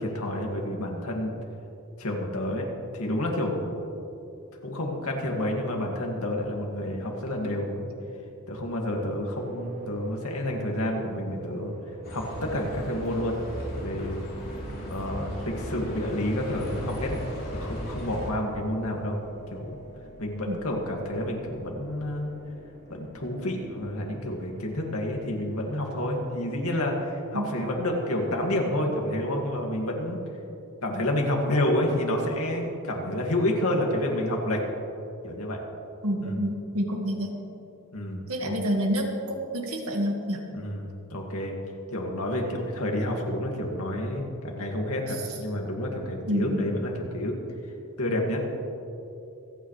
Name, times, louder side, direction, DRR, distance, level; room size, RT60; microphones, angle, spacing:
voice 1, 0.0-1.3 2.0-2.7 2.9-3.8 4.6-7.9 8.5-11.7 12.1-13.4 13.8-14.2 14.9-17.2 17.5-19.2 19.5-19.8 20.2-22.3 22.9-30.2 30.8-34.6 35.2-35.6 36.2-36.4 37.9-38.6 40.5-41.5 41.9-47.3 48.0-48.4, left 1 dB, 80° left, 0 dB, 2.1 m, -29 dB
sound 1, 9.3-28.7, right 4 dB, 35° right, 1.6 m, -46 dB
Bus, 12.0-18.3, left 1 dB, 45° left, 3.3 m, -37 dB
voice 2, 36.0-37.5 38.3-40.4 46.3-46.8, equal, 85° right, 2 dB, 1.8 m, -28 dB
26.5 x 9.1 x 3.3 m, 2.8 s
head